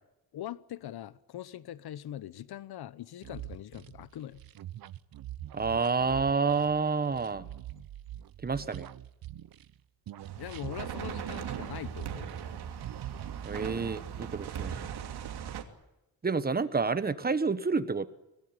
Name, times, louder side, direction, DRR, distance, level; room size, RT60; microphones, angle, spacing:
voice 1, 0.3-4.4 10.4-12.3, left 12 dB, 80° left, 1.0 m, -42 dB
sound 1, 3.2-9.8 10.1-12.6 12.8-13.9, right 12 dB, 65° right, 1.0 m, -44 dB
voice 2, 5.5-7.5 8.4-8.9 13.4-14.9 16.2-18.1, right 4 dB, 25° right, 1.3 m, -29 dB
sound 2, 10.2-15.6, right 8 dB, 90° right, 2.9 m, -39 dB
25.0 x 18.0 x 9.8 m
wide cardioid pair, 145°, 38 cm